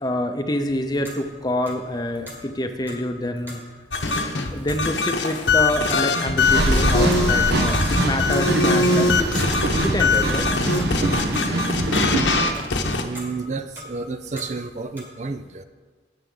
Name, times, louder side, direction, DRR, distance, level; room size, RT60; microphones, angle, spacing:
voice 1, 0.0-3.6 4.1-4.2 4.5-9.3 9.8-10.5, left 1 dB, 20° left, 6 dB, 0.7 m, -26 dB
Clock, 0.7-15.0, equal, 10° right, 1.7 m, -43 dB
sound 1, 3.9-13.0, left 3 dB, 75° left, 1.0 m, -22 dB
sound 2, 6.4-12.3, right 1 dB, 60° right, 1.1 m, -23 dB
voice 2, 12.9-15.6, right 4 dB, 40° right, 10 dB, 0.4 m, -31 dB
18.0 x 7.4 x 3.9 m, 1.5 s
head